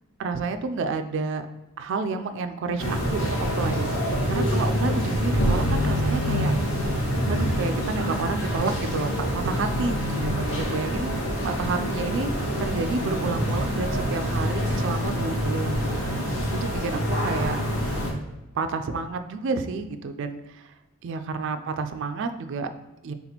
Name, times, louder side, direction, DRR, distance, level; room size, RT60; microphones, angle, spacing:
voice 1, 0.2-1.5 1.8-3.9 4.3-6.5 7.3-11.1 11.4-15.9 16.6-17.6 18.5-20.7 21.0-22.7 23.0-23.1, right 4 dB, 55° right, 8 dB, 0.3 m, -30 dB
sound 1, 2.8-18.1, equal, 65° left, 1.1 m, -26 dB
4.0 x 3.6 x 2.9 m, 1.0 s
head